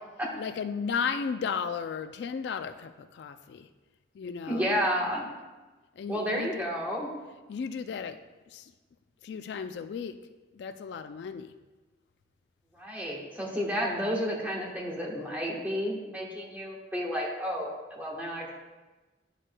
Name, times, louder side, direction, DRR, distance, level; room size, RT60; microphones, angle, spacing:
voice 1, 0.3-3.7 4.1-4.8 6.0-6.7 7.5-8.2 8.5-8.7 9.2-10.2 10.5-11.6, left 6 dB, 65° left, 9 dB, 0.3 m, -34 dB
voice 2, 4.5-5.3 6.1-7.1 12.7-18.4, equal, 10° right, -3 dB, 1.2 m, -31 dB
10.0 x 6.4 x 2.2 m, 1.2 s
head